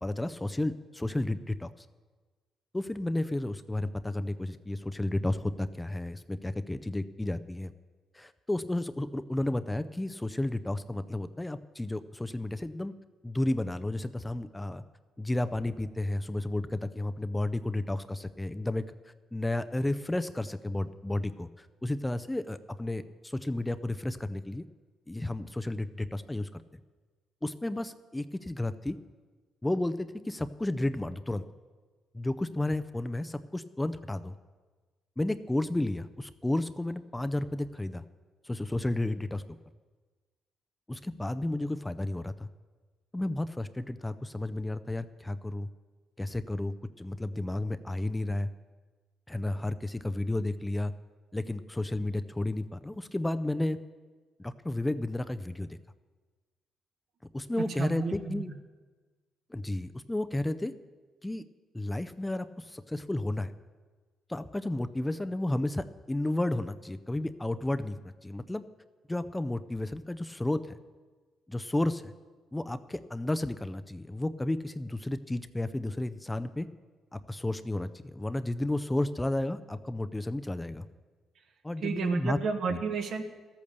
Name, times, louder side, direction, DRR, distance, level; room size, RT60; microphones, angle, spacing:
voice 1, 0.0-1.9 2.7-7.7 8.1-12.9 13.2-14.8 15.2-24.6 25.1-26.6 27.4-29.0 29.6-31.4 32.1-34.3 35.2-38.0 38.4-39.4 40.9-42.5 43.1-45.7 46.2-48.5 49.3-50.9 51.3-53.8 54.4-55.8 57.3-58.5 59.5-60.7 61.2-61.4 61.7-63.5 64.3-68.6 69.1-70.8 71.5-72.1 72.5-76.7 77.1-80.8 81.6-82.4 82.7-82.8, left 1 dB, 10° left, 11 dB, 0.5 m, -32 dB
voice 2, 57.8-58.4 81.8-83.2, right 5 dB, 65° right, 6 dB, 1.4 m, -32 dB
13.5 x 8.6 x 6.7 m, 1.4 s
cardioid pair, 90°, 0 cm